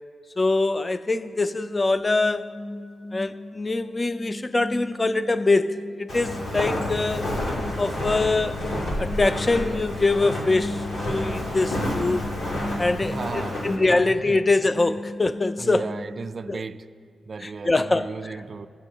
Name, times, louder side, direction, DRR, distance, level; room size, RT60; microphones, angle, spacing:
voice 1, 0.4-2.5 3.1-7.2 7.8-8.6 9.0-12.3 12.8-15.9 16.5-16.6 17.4-18.4, left 3 dB, 30° left, 0.3 m, -24 dB
sound 1, 1.5-16.1, left 1 dB, 50° left, 0.8 m, -38 dB
Walk footsteps, 6.1-13.8, left 1 dB, 80° left, 2.4 m, -29 dB
voice 2, 12.9-13.6 13.9-14.4 15.6-16.9 17.2-18.7, right 4 dB, 50° right, 0.3 m, -35 dB
16.5 x 8.1 x 2.7 m
cardioid pair, 55°, 0 cm